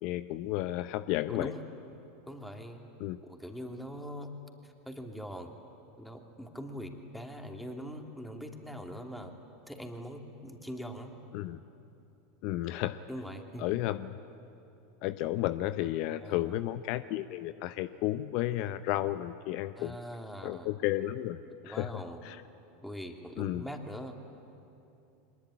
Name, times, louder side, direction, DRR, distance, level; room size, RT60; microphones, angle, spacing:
voice 1, 0.0-1.5 3.0-3.2 11.3-11.6 12.4-13.0 13.6-14.2 15.0-20.0 20.4-21.4 21.6-22.4 23.4-23.6, left 15 dB, 55° left, 13 dB, 0.7 m, -32 dB
voice 2, 1.3-1.6 2.3-2.8 3.2-4.3 4.6-5.5 6.0-9.3 9.7-11.2 13.1-13.7 16.1-16.5 19.7-20.7 21.6-22.2 22.8-24.1, equal, ahead, 3 dB, 2.8 m, -42 dB
23.5 x 20.5 x 9.9 m, 2.8 s
hypercardioid pair, 90°, 0 cm